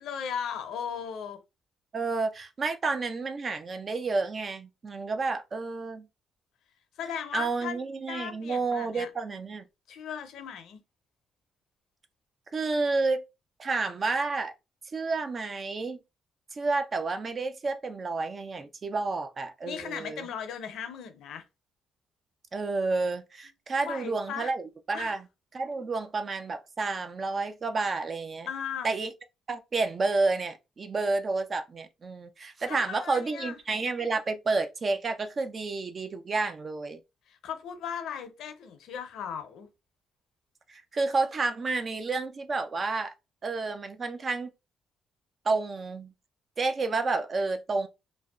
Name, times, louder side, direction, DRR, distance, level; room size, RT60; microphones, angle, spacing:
voice 1, 0.0-1.4 7.0-7.8 8.1-9.1 9.9-10.8 19.6-21.4 23.8-24.5 24.9-25.1 28.5-28.9 32.7-33.6 37.3-39.7, left 7 dB, 80° left, 0.5 m, -37 dB
voice 2, 1.9-6.1 7.3-9.7 12.5-13.3 13.6-14.5 14.9-16.0 16.5-20.3 22.5-25.3 25.5-28.5 28.8-29.1 29.5-37.0 40.7-43.1 43.4-44.5 45.4-46.1 46.6-47.9, right 3 dB, 40° right, 0.4 m, -30 dB
2.6 x 2.0 x 2.3 m
cardioid pair, 90°, 0 cm